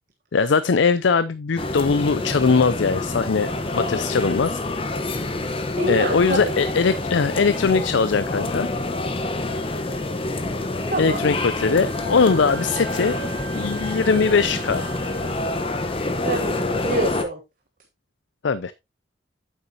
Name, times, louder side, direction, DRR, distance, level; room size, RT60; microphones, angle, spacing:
voice 1, 0.3-4.6 5.2-5.3 5.9-8.7 11.0-13.2 13.5-14.9 18.4-18.7, left 5 dB, 75° left, 0.5 m, -21 dB
sound 1, 1.6-17.2, left 2 dB, 30° left, 1.0 m, -27 dB
voice 2, 5.8-6.5 10.9-11.2 16.2-17.4, right 2 dB, 45° right, 1.2 m, -27 dB
Wind instrument woodwind instrument, 11.4-15.3, right 9 dB, 70° right, 0.9 m, -41 dB
8.7 x 8.1 x 2.8 m
head